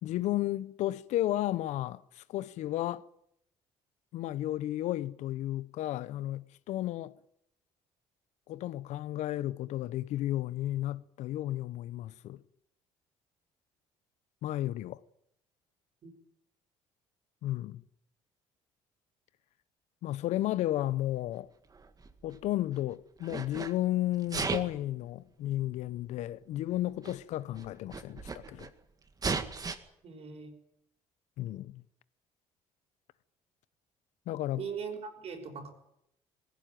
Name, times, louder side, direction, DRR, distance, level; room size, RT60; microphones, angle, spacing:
voice 1, 0.0-3.0 4.1-7.1 8.5-12.4 14.4-15.0 17.4-17.8 20.0-21.5 22.2-28.7 31.4-31.8 34.3-34.6, left 14 dB, 70° left, 0.8 m, -33 dB
Sneeze, 21.7-22.8 23.2-23.7 24.2-24.8 25.8-25.9 26.8-26.9 27.0-27.1 27.5-28.7 29.2-29.8, right 4 dB, 30° right, 2.0 m, -35 dB
voice 2, 30.0-30.5 34.6-35.7, right 6 dB, 55° right, 5.6 m, -40 dB
19.5 x 16.0 x 9.2 m
cardioid pair, 95°, 12 cm